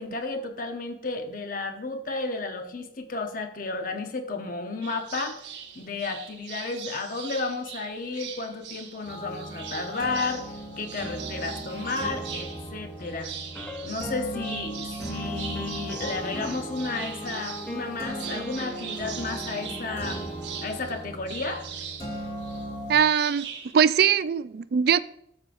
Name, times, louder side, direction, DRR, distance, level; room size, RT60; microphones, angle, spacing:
voice 1, 0.0-5.4 5.7-10.4 10.8-13.3 13.8-20.3 20.6-21.7, left 3 dB, 50° left, 0.9 m, -32 dB
sound 1, 4.8-23.7, right 7 dB, 85° right, 1.1 m, -41 dB
sound 2, 9.0-22.9, right 1 dB, 30° left, 1.9 m, -37 dB
sound 3, 13.5-14.7 15.0-20.9, right 1 dB, 5° left, 0.9 m, -42 dB
voice 2, 22.9-23.5 23.7-25.0, right 7 dB, 60° right, 0.3 m, -21 dB
12.5 x 6.3 x 2.6 m
head